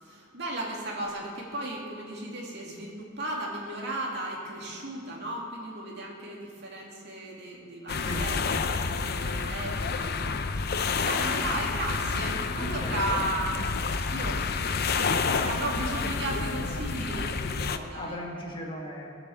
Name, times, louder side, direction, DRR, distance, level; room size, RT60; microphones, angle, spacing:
voice 1, 0.0-10.2 10.5-13.6 14.1-14.4 14.8-18.2, right 1 dB, 60° right, -2 dB, 2.8 m, -35 dB
sound 1, 7.9-17.8, left 4 dB, 55° left, 0.7 m, -29 dB
voice 2, 8.0-8.7 12.5-13.0 17.9-19.1, equal, 25° left, -2 dB, 2.2 m, -37 dB
18.5 x 8.4 x 7.3 m, 2.3 s
head